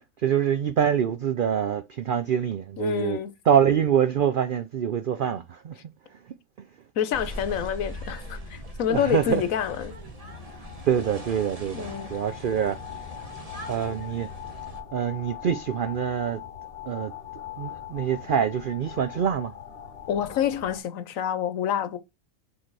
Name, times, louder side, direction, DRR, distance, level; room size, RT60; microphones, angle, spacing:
voice 1, 0.2-3.2 3.5-5.8 8.9-9.4 10.6-12.8 13.7-14.3 14.9-16.4 16.9-17.1 17.6-19.5, right 8 dB, 80° right, 0.4 m, -25 dB
voice 2, 2.8-3.3 7.0-9.9 11.7-12.1 20.1-22.0, left 9 dB, 70° left, 1.2 m, -27 dB
sound 1, 7.1-14.8, equal, 25° right, 1.3 m, -40 dB
sound 2, 9.7-20.8, left 10 dB, 45° left, 1.0 m, -42 dB
6.4 x 3.9 x 4.6 m
omnidirectional pair, 1.5 m